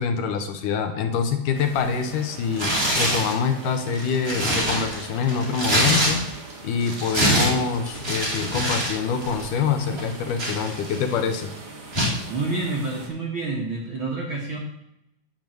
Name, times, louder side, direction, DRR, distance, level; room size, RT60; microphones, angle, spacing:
voice 1, 0.0-6.2 6.6-11.5, left 6 dB, 75° left, 6 dB, 2.1 m, -25 dB
sound 1, 1.5-13.1, right 3 dB, 40° right, 1.5 m, -42 dB
Tearing, 2.5-3.3 3.9-6.5 6.8-9.0 9.2-9.4 10.0-11.1 11.9-12.2, equal, 20° right, 2.2 m, -24 dB
voice 2, 12.3-14.6, right 3 dB, 80° right, 1 dB, 1.1 m, -28 dB
10.5 x 5.3 x 7.6 m, 0.85 s
omnidirectional pair, 4.2 m